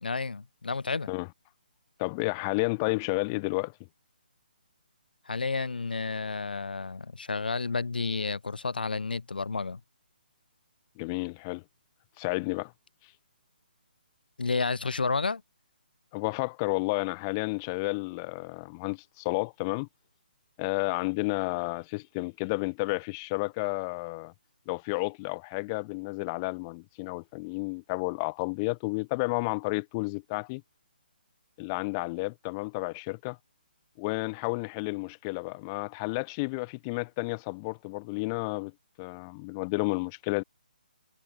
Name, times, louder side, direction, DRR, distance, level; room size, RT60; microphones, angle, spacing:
voice 1, 0.0-1.1 5.3-9.8 14.4-15.4, left 4 dB, 65° left, 0.7 m, -31 dB
voice 2, 2.0-3.7 11.0-11.6 12.2-12.7 16.1-19.9 20.6-24.3 24.7-30.6 31.6-33.4 34.0-38.7 39.0-40.4, left 28 dB, 20° left, 0.7 m, -31 dB
figure-of-eight pair, 140°, 5 cm